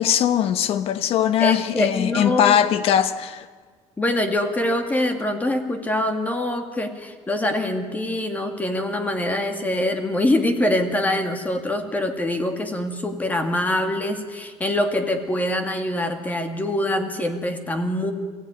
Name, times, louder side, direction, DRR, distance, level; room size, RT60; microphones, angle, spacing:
voice 1, 0.0-3.5, left 9 dB, 60° left, 1.3 m, -20 dB
voice 2, 1.4-2.6 4.0-18.1, left 1 dB, 15° left, 2.3 m, -24 dB
24.0 x 16.5 x 9.9 m
cardioid pair, 135°, 11 cm